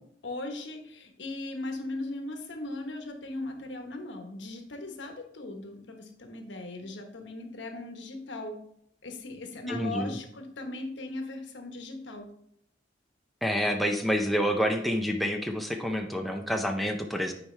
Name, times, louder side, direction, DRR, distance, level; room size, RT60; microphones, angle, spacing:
voice 1, 0.2-8.6 9.0-12.3, left 2 dB, 80° left, 5 dB, 1.1 m, -38 dB
voice 2, 9.7-10.2 13.4-17.3, equal, ahead, 3 dB, 0.5 m, -28 dB
9.0 x 4.7 x 3.3 m, 0.70 s
head